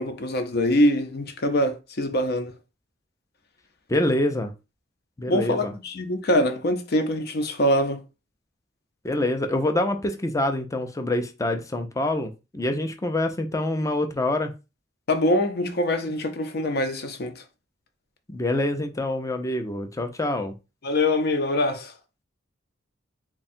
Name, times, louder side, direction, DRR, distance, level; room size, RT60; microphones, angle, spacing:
voice 1, 0.0-2.5 5.3-8.0 15.1-17.4 20.8-21.9, left 1 dB, 55° left, 0.7 m, -24 dB
voice 2, 3.9-4.5 5.2-5.7 9.0-14.5 18.3-20.5, left 1 dB, 15° left, 0.5 m, -26 dB
3.6 x 2.3 x 4.2 m
head